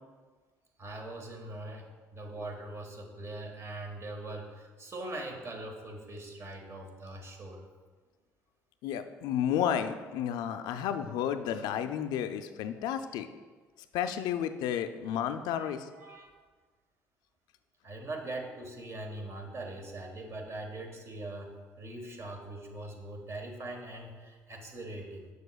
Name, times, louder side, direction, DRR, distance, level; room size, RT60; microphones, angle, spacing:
voice 1, 0.8-7.7 15.6-16.4 17.8-25.3, right 2 dB, 40° right, 2 dB, 1.3 m, -42 dB
voice 2, 8.8-13.3 13.9-15.9, left 9 dB, 70° left, 9 dB, 0.4 m, -32 dB
6.6 x 6.4 x 2.3 m, 1.4 s
hypercardioid pair, 60°, 7 cm